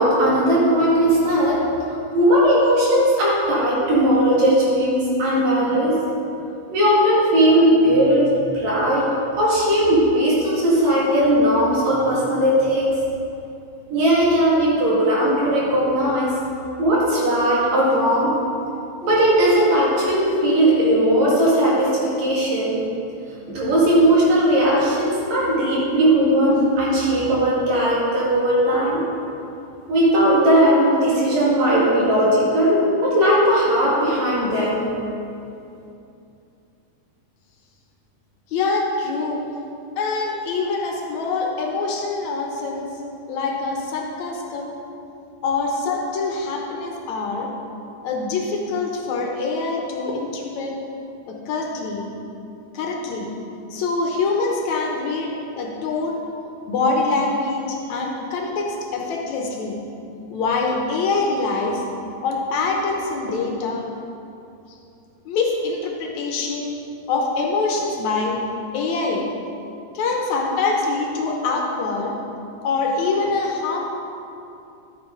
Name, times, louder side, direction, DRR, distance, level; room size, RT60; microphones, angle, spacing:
voice 1, 0.0-1.6 1.9-6.0 6.7-9.1 9.4-12.9 13.9-16.3 16.8-18.4 19.0-22.8 23.5-29.0 29.9-34.9, right 1 dB, 60° right, -6 dB, 3.4 m, -18 dB
voice 2, 38.5-39.4 40.0-42.9 43.3-44.8 45.4-47.5 48.0-50.8 51.3-52.1 52.7-53.3 53.7-56.2 56.7-59.8 60.3-61.8 62.2-63.9 64.7-64.8 65.3-66.7 67.1-68.4 68.7-69.3 69.9-72.2 72.6-73.9, left 3 dB, 75° left, 0 dB, 2.1 m, -24 dB
11.5 x 8.5 x 3.8 m, 2.7 s
omnidirectional pair, 3.5 m